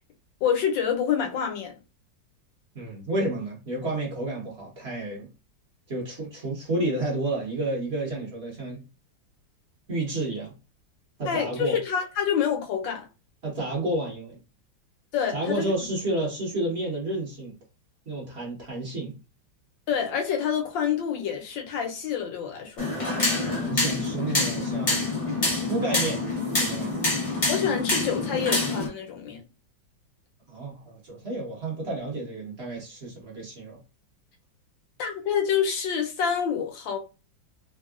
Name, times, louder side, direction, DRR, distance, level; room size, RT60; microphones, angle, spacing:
voice 1, 0.4-1.7 11.3-13.1 15.1-15.7 19.9-22.9 27.5-29.4 35.0-37.0, left 8 dB, 75° left, 1.4 m, -27 dB
voice 2, 2.7-5.3 5.9-8.8 9.9-10.5 11.2-11.8 13.4-14.4 15.3-17.6 18.1-19.1 23.3-25.1 25.6-26.2 26.6-27.1 30.5-33.8, right 2 dB, 40° right, 1.1 m, -31 dB
sound 1, 22.8-28.9, left 2 dB, 55° left, 0.3 m, -26 dB
3.5 x 2.3 x 2.4 m
omnidirectional pair, 2.1 m